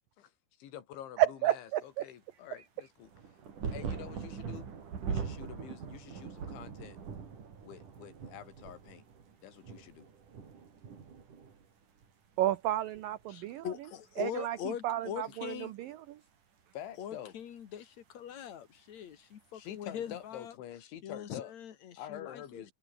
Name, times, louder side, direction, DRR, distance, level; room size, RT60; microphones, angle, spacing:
voice 1, 0.6-3.1 3.7-4.7 5.1-7.0 7.6-9.0 9.4-10.1 16.7-17.3 19.5-21.5 22.0-22.7, left 11 dB, 90° left, 4.7 m, -47 dB
voice 2, 1.2-2.1 2.6-2.7 12.4-13.7 14.2-16.2, right 13 dB, 90° right, 2.0 m, -32 dB
sound 1, 3.0-12.1 12.4-13.3 14.2-14.3, right 6 dB, 45° right, 4.9 m, -42 dB
voice 3, 13.3-15.7 17.0-20.5 21.0-22.7, left 9 dB, 50° left, 2.4 m, -42 dB
omnidirectional pair, 5.2 m